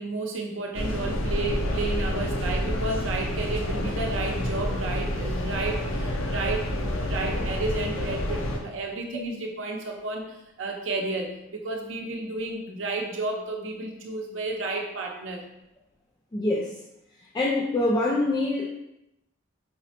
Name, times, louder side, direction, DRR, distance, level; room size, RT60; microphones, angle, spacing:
voice 1, 0.0-15.4, right 2 dB, 70° right, 2 dB, 0.6 m, -32 dB
sound 1, 0.7-8.6, left 1 dB, 75° left, 0.5 m, -29 dB
voice 2, 16.3-16.7 17.3-18.7, left 2 dB, 20° left, -5 dB, 0.3 m, -24 dB
4.9 x 2.0 x 2.8 m, 0.86 s
head